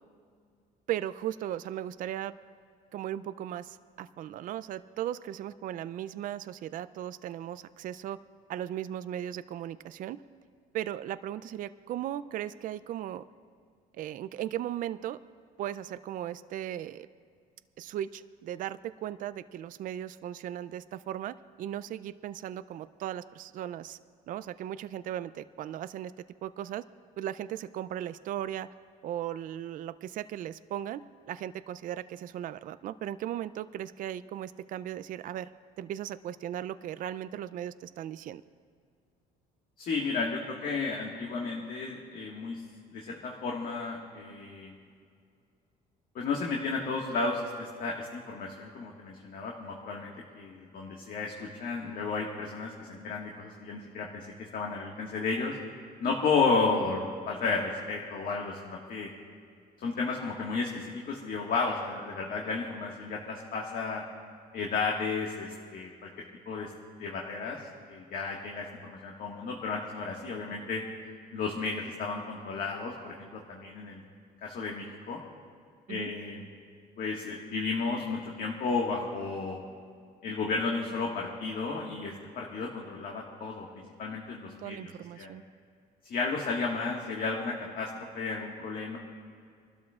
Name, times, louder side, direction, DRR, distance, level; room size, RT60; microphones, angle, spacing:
voice 1, 0.9-2.3 2.9-8.2 8.5-10.2 10.7-13.2 13.9-15.2 15.6-17.1 17.8-24.0 24.3-26.1 26.4-26.8 27.2-28.7 29.0-35.5 35.8-38.4 75.9-76.1 84.6-85.4, right 11 dB, 55° right, 14 dB, 0.4 m, -37 dB
voice 2, 39.8-42.6 42.9-44.7 46.1-54.2 54.5-55.5 56.0-59.1 59.8-64.0 64.5-66.1 66.5-66.7 67.0-67.6 67.9-70.8 71.3-74.0 74.4-75.2 75.9-76.4 77.0-79.6 80.2-83.7 84.0-85.3 86.1-89.0, left 4 dB, 60° left, -1 dB, 1.6 m, -33 dB
27.5 x 12.5 x 2.4 m, 2.2 s
cardioid pair, 110°, 17 cm